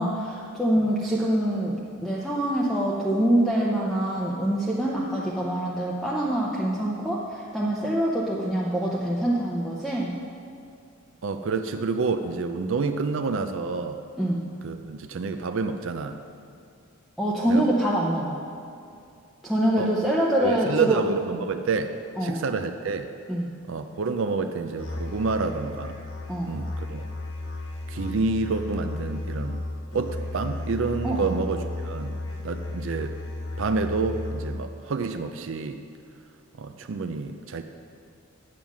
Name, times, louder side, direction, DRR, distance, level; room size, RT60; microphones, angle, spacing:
voice 1, 0.0-10.1 14.2-14.4 17.2-18.4 19.4-21.0 22.2-22.4 23.3-23.5 26.3-26.6 31.0-31.3, right 1 dB, ahead, -6 dB, 0.6 m, -25 dB
voice 2, 11.2-14.0 14.6-16.2 17.5-17.7 19.8-19.9 20.4-21.9 22.2-23.1 23.7-26.0 26.4-27.1 27.9-29.7 29.9-32.1 32.4-33.2 33.6-35.8 36.6-37.6, right 4 dB, 60° right, 7 dB, 0.4 m, -28 dB
Musical instrument, 24.8-34.7, left 2 dB, 60° left, 1.6 m, -34 dB
8.7 x 7.5 x 6.0 m, 2.4 s
head